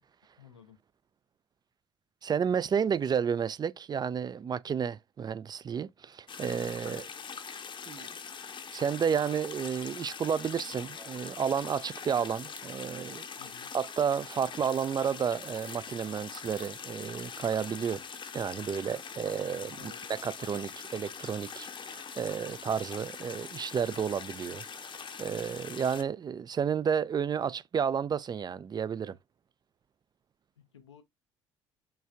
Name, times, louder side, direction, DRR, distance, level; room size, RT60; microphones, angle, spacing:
voice 1, 0.4-0.8 2.9-3.0 4.8-5.0 6.8-7.3 13.4-13.7 19.8-20.0 30.6-31.0, left 7 dB, 85° left, 0.7 m, -54 dB
voice 2, 2.2-7.0 7.9-8.1 8.7-13.3 13.7-18.0 18.3-29.2, right 7 dB, 30° right, 0.4 m, -31 dB
sound 1, 6.3-26.0, left 6 dB, 35° left, 0.7 m, -43 dB
sound 2, 10.7-12.7 13.7-13.9 14.6-14.9 15.4-15.8 16.3-16.7 18.0-18.1, right 2 dB, 10° right, 0.7 m, -54 dB
5.5 x 3.2 x 2.4 m
figure-of-eight pair, 55°, 14 cm